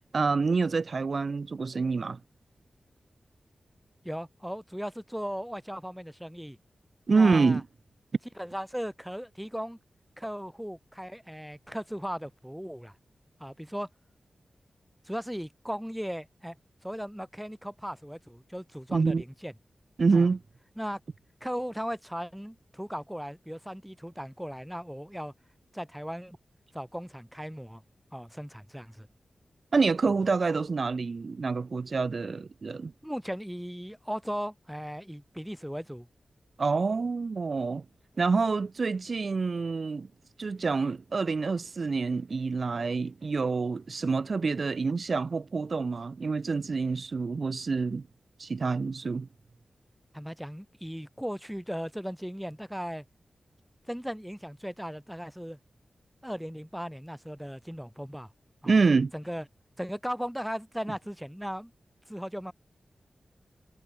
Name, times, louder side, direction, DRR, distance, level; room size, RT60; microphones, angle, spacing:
voice 1, 0.1-2.2 7.1-7.6 18.9-19.2 20.0-20.4 29.7-32.9 36.6-37.8 38.2-40.1 40.4-48.1 48.4-49.3 58.7-59.1, right 4 dB, 45° right, 0.5 m, -27 dB
voice 2, 4.0-6.6 7.1-7.6 8.4-9.8 10.2-12.9 13.4-13.9 15.0-16.6 16.8-19.5 20.1-20.3 20.8-21.0 21.4-25.3 25.7-26.4 26.7-27.8 28.1-29.1 33.0-36.1 50.1-53.0 53.9-55.6 56.2-58.3 58.6-58.7 59.1-59.4 59.8-61.7 62.1-62.5, equal, ahead, 0.8 m, -37 dB
wide cardioid pair, 160°, 0 cm